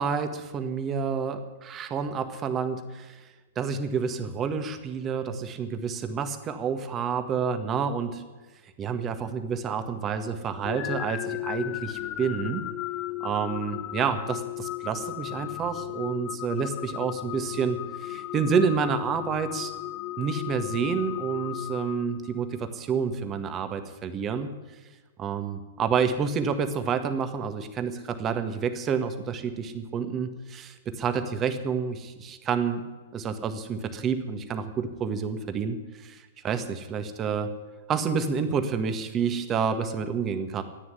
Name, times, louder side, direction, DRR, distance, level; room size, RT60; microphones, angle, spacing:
voice 1, 0.0-3.2 3.5-8.2 8.8-12.6 13.2-19.7 20.2-24.5 25.2-32.8 33.1-37.5 37.9-40.6, right 6 dB, 25° right, 8 dB, 1.7 m, -29 dB
sound 1, 10.6-22.6, left 15 dB, 35° left, 0.6 m, -35 dB
13.5 x 9.6 x 9.5 m, 1.3 s
figure-of-eight pair, 105°, 0 cm